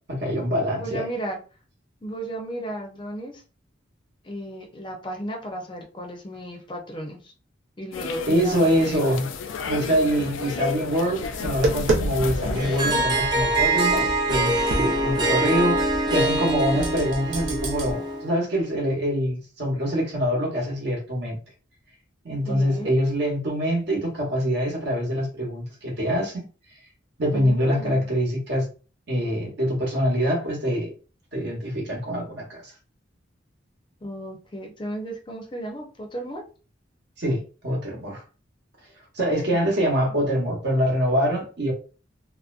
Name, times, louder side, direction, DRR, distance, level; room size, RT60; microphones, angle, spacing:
voice 1, 0.1-1.0 8.3-9.3 9.7-21.4 22.2-26.4 27.2-28.7 29.1-30.9 31.3-32.7 37.2-38.2 39.1-41.7, equal, 60° right, 0.9 m, -24 dB
voice 2, 0.8-1.4 2.0-3.4 4.2-7.3 7.8-9.2 22.5-22.9 27.3-28.1 34.0-36.4, right 1 dB, 25° left, 0.6 m, -35 dB
sound 1, 7.9-13.0, left 5 dB, 85° left, 0.3 m, -33 dB
Tap, 11.2-17.9, right 2 dB, 80° right, 0.6 m, -30 dB
Harp, 12.5-18.3, right 2 dB, 20° right, 0.5 m, -24 dB
2.5 x 2.1 x 2.4 m
head